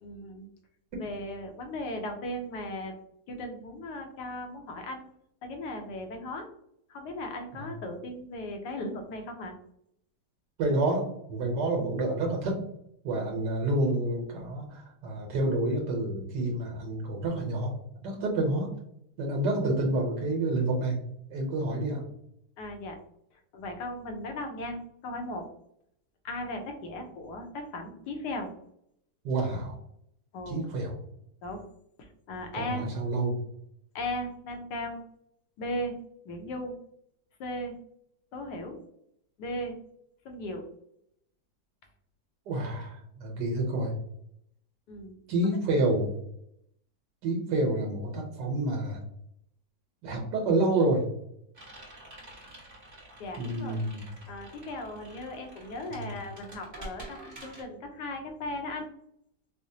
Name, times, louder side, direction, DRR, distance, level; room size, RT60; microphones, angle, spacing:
voice 1, 0.0-0.5 1.0-2.9 3.3-5.1 5.4-6.5 6.9-9.5 22.6-23.0 23.5-25.5 26.2-28.5 30.3-30.7 31.4-31.6 32.0-32.9 33.9-35.0 35.6-36.0 36.2-36.8 37.4-37.7 38.3-38.8 39.4-39.8 40.2-40.6 44.9-45.2 53.2-53.8 54.3-58.9, left 1 dB, 75° left, 4 dB, 1.3 m, -37 dB
voice 2, 10.6-12.7 13.0-17.7 18.0-18.7 19.2-21.0 21.3-22.0 29.2-29.8 30.5-31.0 32.5-33.4 42.5-43.9 45.3-46.1 47.2-49.0 50.0-51.0 53.4-54.0 55.9-56.2, right 2 dB, 80° right, 1 dB, 1.4 m, -28 dB
sound 1, 51.5-57.6, right 2 dB, 30° right, 1.3 m, -48 dB
4.8 x 2.1 x 2.7 m, 0.73 s
omnidirectional pair, 1.9 m